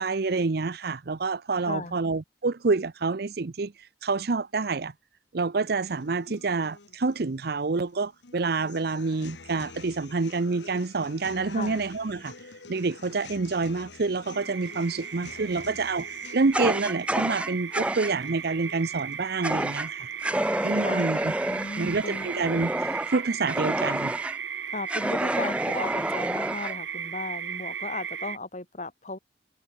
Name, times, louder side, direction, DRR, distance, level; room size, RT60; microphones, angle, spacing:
voice 1, 0.0-3.7 4.0-4.9 5.3-12.3 12.7-20.1 20.6-21.3 21.8-24.1, right 3 dB, 60° right, 0.7 m, -28 dB
voice 2, 1.7-2.0 11.5-11.8 20.8-21.1 21.4-22.3 24.7-29.2, left 2 dB, 40° left, 2.7 m, -36 dB
sound 1, 5.8-21.8, left 4 dB, 80° left, 1.6 m, -49 dB
sound 2, 14.3-28.4, right 8 dB, 80° right, 1.1 m, -36 dB
Fire, 16.5-18.1 19.4-19.9 20.2-24.4 24.9-26.8, right 1 dB, 5° right, 1.0 m, -29 dB
head